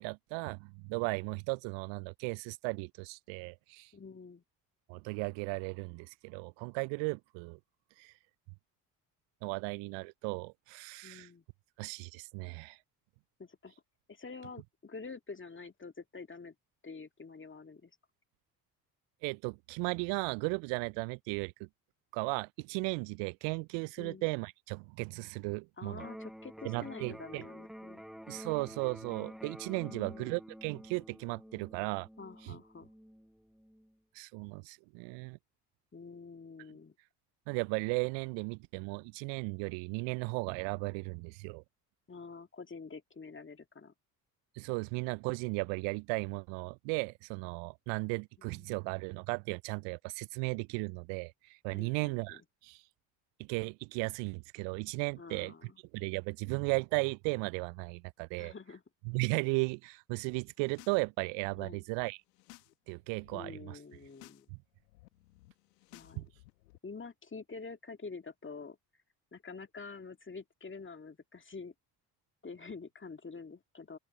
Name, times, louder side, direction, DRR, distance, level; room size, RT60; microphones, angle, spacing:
voice 1, 0.0-3.9 4.9-7.6 8.0-8.1 9.4-11.3 11.8-12.8 19.2-21.7 22.1-26.1 26.6-27.4 28.3-32.1 32.5-32.6 34.1-35.4 37.5-41.6 44.6-52.8 53.4-55.5 55.9-58.5 59.1-62.2 62.9-63.8 66.2-66.3, right 32 dB, 65° right, 0.6 m, -36 dB
voice 2, 3.9-4.4 11.0-11.4 13.4-13.7 14.1-16.5 16.8-17.9 24.0-24.3 25.8-28.0 29.9-30.4 32.2-32.9 35.9-36.9 42.1-43.9 48.4-48.7 51.7-52.4 55.2-55.8 58.4-58.8 61.6-61.8 63.3-64.5 65.9-66.3 66.8-68.8 69.3-71.7 72.4-74.0, left 4 dB, 25° left, 2.2 m, -47 dB
Electric guitar, 25.9-33.9, equal, ahead, 1.2 m, -49 dB
sound 1, 60.5-61.0 61.3-62.7 63.0-63.4 63.9-64.4 64.7-66.8, left 21 dB, 80° left, 1.6 m, -59 dB
open air
hypercardioid pair, 45°, 48 cm